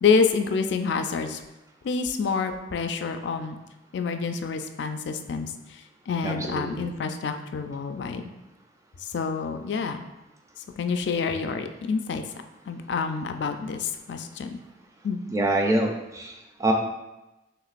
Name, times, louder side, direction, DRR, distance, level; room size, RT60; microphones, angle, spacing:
voice 1, 0.0-1.4 1.8-3.6 3.9-8.2 9.1-10.1 10.8-12.2 12.7-14.6 15.0-15.2, left 5 dB, 65° left, 7 dB, 0.3 m, -27 dB
voice 2, 6.2-6.9 15.3-16.7, right 1 dB, 15° right, 2 dB, 0.4 m, -26 dB
5.9 x 3.0 x 2.5 m, 1.0 s
head